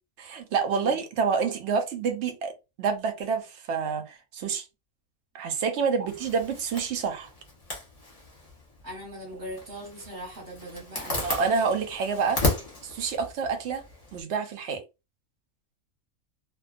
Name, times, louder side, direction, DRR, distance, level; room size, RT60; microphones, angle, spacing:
voice 1, 0.2-2.5 2.8-4.7 5.3-7.3 11.2-12.5 12.8-13.8 14.1-14.8, right 5 dB, 65° right, 0.8 m, -28 dB
voice 2, 0.7-1.0 6.0-6.1 8.8-11.5, right 1 dB, 15° right, 0.9 m, -40 dB
Zipper (clothing), 6.1-14.2, left 2 dB, 30° left, 0.8 m, -35 dB
2.3 x 2.3 x 2.4 m
omnidirectional pair, 1.5 m